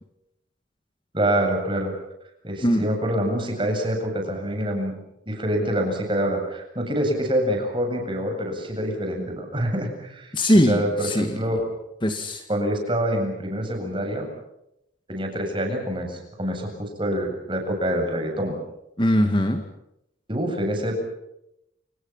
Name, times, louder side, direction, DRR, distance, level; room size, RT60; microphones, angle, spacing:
voice 1, 1.1-1.9 2.4-5.0 5.3-10.4 10.7-11.7 12.5-14.3 15.1-18.6 20.3-21.0, equal, 25° right, 3 dB, 8.0 m, -26 dB
voice 2, 10.3-11.4 12.0-12.4 19.0-19.6, equal, 25° left, 6 dB, 2.3 m, -21 dB
29.0 x 28.5 x 5.8 m, 0.83 s
head